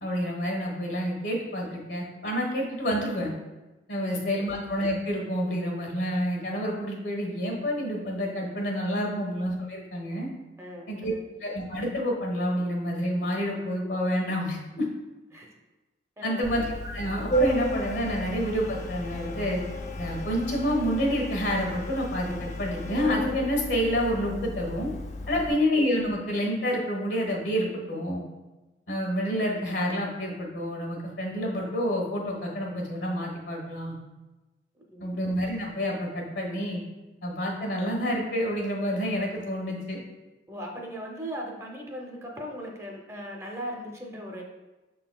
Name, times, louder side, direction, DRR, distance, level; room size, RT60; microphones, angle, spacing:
voice 1, 0.0-3.3 3.9-10.3 10.9-11.1 11.4-14.9 16.2-19.6 20.0-24.9 25.3-28.2 28.9-33.9 35.0-36.8 37.2-40.0, equal, 90° left, 0 dB, 1.2 m, -28 dB
voice 2, 4.0-4.4 9.2-9.3 10.6-11.2 15.3-15.5 16.2-16.4 25.3-25.5 34.8-35.1 40.5-44.4, equal, 15° right, 0 dB, 0.5 m, -39 dB
Organ, 16.4-25.5, equal, 40° left, 0.4 m, -33 dB
6.2 x 3.8 x 2.2 m, 1.1 s
head